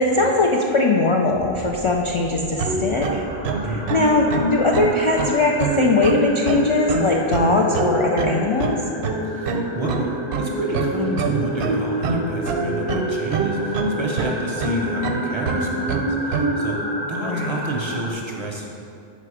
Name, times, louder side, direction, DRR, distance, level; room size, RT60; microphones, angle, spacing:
voice 1, 0.0-3.2 3.6-8.8 17.2-17.5, left 3 dB, 55° left, 0 dB, 0.3 m, -20 dB
sound 1, 1.2-7.5, right 2 dB, 85° left, 1.9 m, -40 dB
sound 2, 2.3-16.6, right 3 dB, 85° right, 0.8 m, -24 dB
sound 3, 2.9-18.1, right 1 dB, 25° left, 0.7 m, -31 dB
voice 2, 9.2-18.7, right 1 dB, 35° right, -1 dB, 0.5 m, -30 dB
5.6 x 5.0 x 4.9 m, 2.6 s
omnidirectional pair, 1.0 m